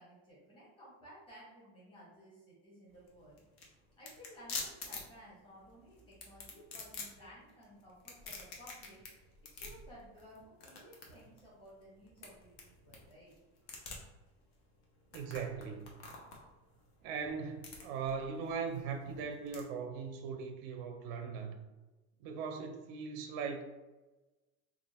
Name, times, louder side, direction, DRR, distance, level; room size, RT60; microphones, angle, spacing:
voice 1, 0.0-3.4 4.0-13.3, equal, 15° left, -8 dB, 1.2 m, -56 dB
sound 1, 2.9-19.6, left 4 dB, 60° left, 0.9 m, -48 dB
voice 2, 15.1-15.9 17.0-21.6 22.2-23.6, right 6 dB, 50° right, 5 dB, 0.4 m, -39 dB
3.4 x 2.4 x 4.0 m, 1.1 s
cardioid pair, 175°, 34 cm